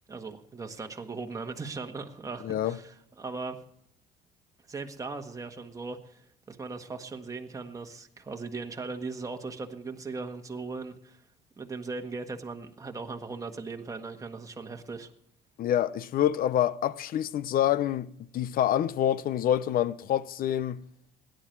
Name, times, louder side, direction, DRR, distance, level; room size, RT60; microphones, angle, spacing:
voice 1, 0.1-3.6 4.7-11.2 11.6-15.1, right 4 dB, 20° right, 1.5 m, -38 dB
voice 2, 2.4-2.8 15.6-20.8, left 11 dB, 60° left, 0.7 m, -27 dB
17.0 x 10.5 x 4.6 m
cardioid pair, 110°, 17 cm